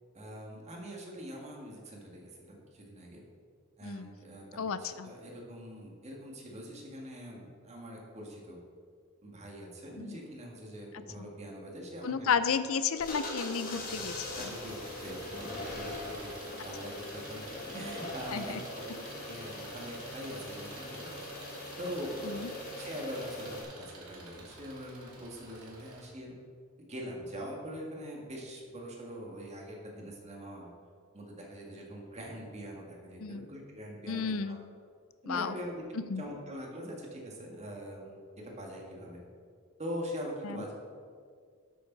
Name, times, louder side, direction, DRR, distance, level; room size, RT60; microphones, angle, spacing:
voice 1, 0.1-3.2 3.8-8.6 9.2-12.3 14.3-14.8 15.0-21.2 21.8-22.5 22.8-26.4 26.8-30.7 31.1-34.6 35.2-35.8 36.2-39.2 39.8-40.7, equal, 30° right, -1 dB, 2.0 m, -43 dB
voice 2, 4.6-5.1 10.0-10.2 11.2-11.3 12.0-14.1 14.4-14.5 18.3-18.6 22.2-22.5 33.2-33.5 34.1-34.6 35.2-35.6 36.1-36.2 40.4-40.6, left 6 dB, 70° left, 12 dB, 0.5 m, -32 dB
sound 1, 13.0-23.6, left 2 dB, 40° left, 2.2 m, -42 dB
Engine, 13.5-26.1, right 2 dB, 75° right, 2.5 m, -50 dB
12.5 x 8.5 x 4.0 m, 2.1 s
head